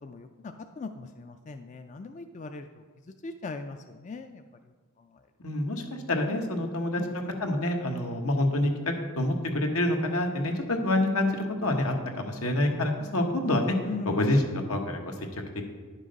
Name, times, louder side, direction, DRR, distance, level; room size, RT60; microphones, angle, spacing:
voice 1, 0.0-5.3 6.9-7.3 13.8-14.3, left 3 dB, 35° left, 7 dB, 0.4 m, -40 dB
voice 2, 5.4-5.8 6.1-13.7 14.1-15.1, left 1 dB, 85° left, 3 dB, 1.3 m, -27 dB
10.5 x 6.1 x 5.2 m, 1.4 s
head